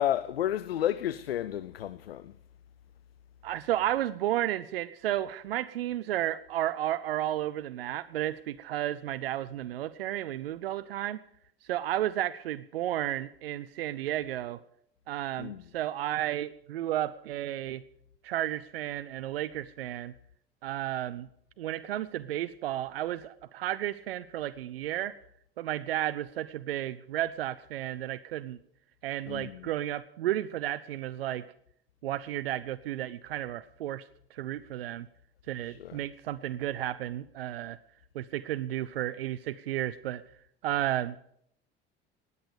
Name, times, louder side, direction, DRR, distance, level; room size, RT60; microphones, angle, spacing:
voice 1, 0.0-2.3 15.4-15.6 29.3-29.7 35.7-36.0, left 11 dB, 80° left, 0.5 m, -31 dB
voice 2, 3.4-11.2 11.7-14.6 15.1-17.8 18.2-20.1 20.6-21.3 21.6-25.2 25.6-28.6 29.0-31.5 32.0-35.1 35.5-37.8 38.1-40.2 40.6-41.2, right 13 dB, 75° right, 0.5 m, -33 dB
19.0 x 8.3 x 6.7 m
figure-of-eight pair, 60°, 29 cm